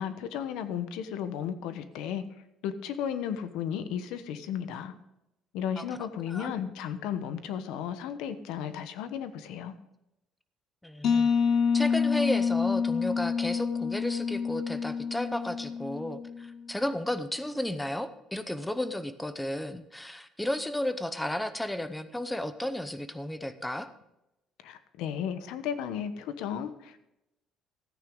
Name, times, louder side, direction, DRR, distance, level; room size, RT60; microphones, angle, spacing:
voice 1, 0.0-2.2 2.6-4.9 5.5-9.7 24.6-27.0, left 8 dB, 85° left, 11 dB, 1.0 m, -34 dB
voice 2, 5.8-6.5 10.8-11.3 11.7-23.9, left 1 dB, 5° left, 11 dB, 0.7 m, -33 dB
sound 1, 11.0-16.6, left 6 dB, 45° left, 0.6 m, -28 dB
14.0 x 9.3 x 3.8 m, 0.88 s
cardioid pair, 160°, 0 cm